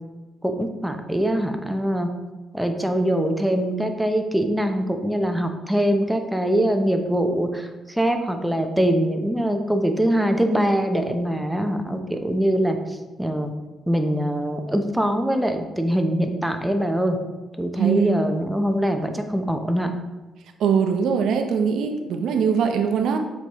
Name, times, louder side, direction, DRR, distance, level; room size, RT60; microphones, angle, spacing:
voice 1, 0.4-2.1 2.5-13.5 13.9-17.2 17.6-19.9, right 1 dB, 5° right, 5 dB, 0.7 m, -23 dB
voice 2, 17.8-18.1 20.6-23.2, right 6 dB, 75° right, 5 dB, 0.7 m, -21 dB
6.8 x 4.7 x 3.0 m, 1.2 s
cardioid pair, 90°, 0 cm